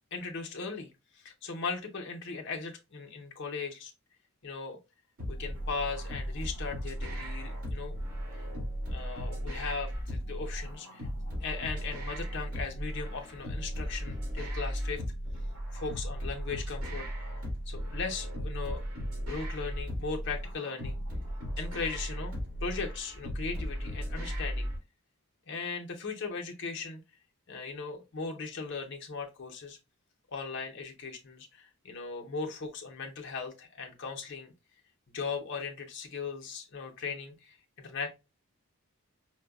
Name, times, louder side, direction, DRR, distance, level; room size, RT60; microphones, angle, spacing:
voice 1, 0.1-0.9 1.1-3.9 4.4-4.8 5.3-8.0 8.9-11.1 11.4-15.0 15.7-17.3 17.7-18.8 19.3-21.0 21.6-24.7 25.5-27.0 27.5-29.8 30.3-34.5 35.1-38.1, left 4 dB, 50° left, 0.7 m, -38 dB
sound 1, 5.2-24.8, equal, 75° right, 2.1 m, -36 dB
4.6 x 2.2 x 2.3 m
head